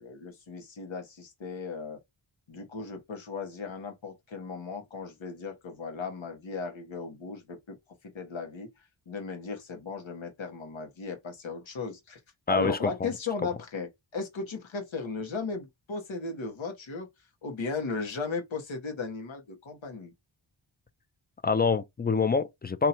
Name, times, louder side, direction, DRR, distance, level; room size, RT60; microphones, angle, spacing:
voice 1, 0.0-2.0 2.5-7.8 8.1-8.7 9.1-12.2 12.5-17.1 17.4-20.1, left 4 dB, 75° left, 1.3 m, -36 dB
voice 2, 12.5-13.1 21.4-22.9, left 5 dB, 25° left, 0.3 m, -26 dB
4.3 x 2.8 x 2.6 m
wide cardioid pair, 80°, 46 cm